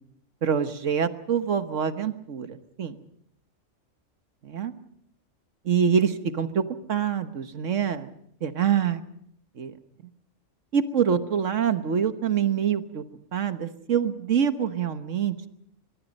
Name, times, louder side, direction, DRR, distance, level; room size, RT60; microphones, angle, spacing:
voice 1, 0.4-3.0 4.4-4.7 5.6-8.1 8.4-9.0 9.6-9.7 10.7-13.0 13.3-15.5, right 7 dB, 75° right, 10 dB, 1.5 m, -25 dB
23.5 x 22.0 x 5.4 m, 0.69 s
omnidirectional pair, 1.3 m